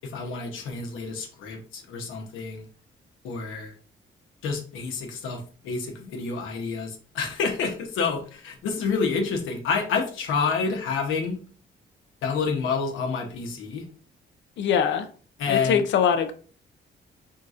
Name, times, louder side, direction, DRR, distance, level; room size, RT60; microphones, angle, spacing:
voice 1, 0.0-2.7 3.2-3.7 4.4-11.4 12.2-13.8 15.4-15.8, left 5 dB, 85° left, 2 dB, 1.0 m, -28 dB
voice 2, 14.6-15.1 15.5-16.3, left 7 dB, 65° left, 9 dB, 0.6 m, -22 dB
4.1 x 3.7 x 2.5 m, 0.41 s
cardioid pair, 90°, 20 cm